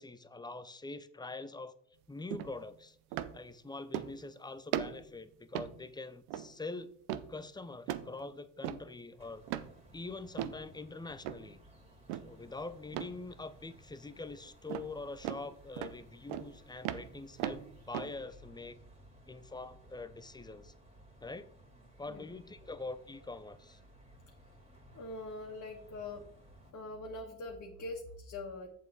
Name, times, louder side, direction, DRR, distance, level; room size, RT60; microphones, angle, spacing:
voice 1, 0.0-1.8 2.1-3.0 3.3-9.4 9.9-11.6 12.2-18.8 19.3-20.7 21.2-21.5 22.0-23.8, left 3 dB, 10° left, 13 dB, 0.6 m, -44 dB
sound 1, 2.3-2.5 3.1-3.4 3.9-4.3 4.7-5.1 5.5-5.8 6.3-6.5 7.1-7.3 7.9-8.1 8.6-8.9 9.5-9.7 10.4-10.6 11.2-11.5 12.1-12.4 12.9-13.2 14.7-14.9 15.2-15.4 15.8-16.0 16.3-16.5 16.8-18.1, right 12 dB, 75° right, 0.7 m, -38 dB
sound 2, 9.2-26.7, right 1 dB, 15° right, 2.5 m, -59 dB
voice 2, 24.9-26.2 26.7-28.7, left 2 dB, 40° left, -2 dB, 1.8 m, -43 dB
8.2 x 6.9 x 4.0 m, 0.63 s
supercardioid pair, 75°, 41 cm